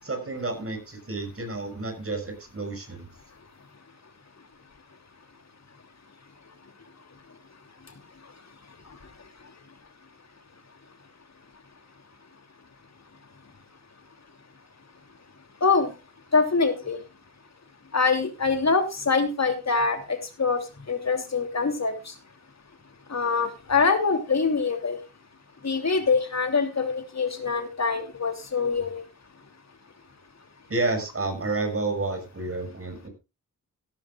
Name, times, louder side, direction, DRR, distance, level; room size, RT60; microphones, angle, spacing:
voice 1, 0.0-3.1 30.7-33.1, right 3 dB, 40° right, 6 dB, 6.3 m, -30 dB
voice 2, 16.3-17.0 17.9-20.6 20.9-22.1 23.1-25.0 25.6-29.0, left 4 dB, 50° left, 6 dB, 2.9 m, -24 dB
16.5 x 13.5 x 2.4 m, 0.27 s
cardioid pair, 65°, 35 cm